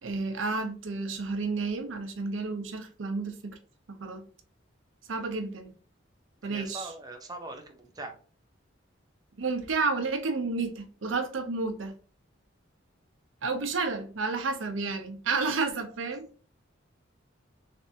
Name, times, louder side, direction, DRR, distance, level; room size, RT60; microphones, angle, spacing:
voice 1, 0.0-3.6 3.9-4.3 5.1-5.7 6.4-6.9 9.4-11.9 13.4-16.3, right 4 dB, 90° right, 0.7 m, -31 dB
voice 2, 6.4-8.1 15.5-15.6, right 2 dB, 20° right, 0.7 m, -41 dB
3.4 x 3.3 x 2.8 m
head